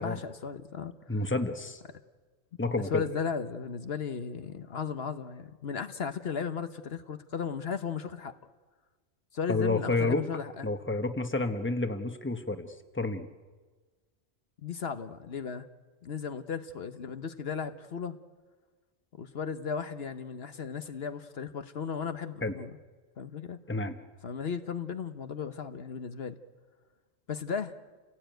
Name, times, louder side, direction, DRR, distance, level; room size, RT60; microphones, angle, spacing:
voice 1, 0.0-1.2 2.9-8.3 9.3-10.7 14.6-15.7 16.0-18.2 19.1-22.7 23.2-23.6 24.2-26.4 27.3-27.8, left 6 dB, 65° left, 9 dB, 1.2 m, -35 dB
voice 2, 1.1-1.8 2.6-3.0 9.5-10.2 10.6-13.3 22.4-22.5 23.7-24.0, left 2 dB, 10° left, 7 dB, 1.2 m, -30 dB
30.0 x 17.5 x 9.2 m, 1.4 s
omnidirectional pair, 1.1 m